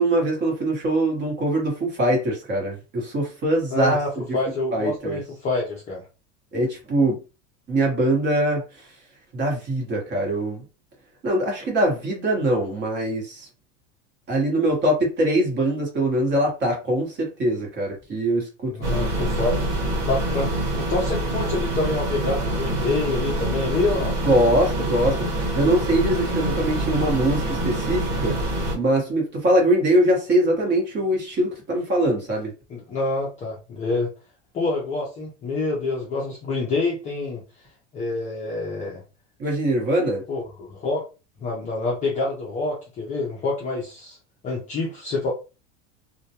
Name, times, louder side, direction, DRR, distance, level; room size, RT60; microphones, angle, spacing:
voice 1, 0.0-4.2 4.7-5.2 6.5-7.2 7.7-8.6 9.3-10.6 11.2-13.5 14.3-18.9 24.2-28.4 28.7-32.5 39.4-40.2, right 1 dB, 30° right, 1.0 m, -22 dB
voice 2, 3.7-6.0 18.7-19.8 20.0-24.2 32.7-34.1 34.5-37.4 37.9-39.0 40.3-41.1 41.4-44.2 44.4-45.3, left 3 dB, 20° left, 0.4 m, -27 dB
sound 1, 18.8-28.8, right 1 dB, 55° right, 1.1 m, -25 dB
2.2 x 2.1 x 2.7 m
supercardioid pair, 140°, 37 cm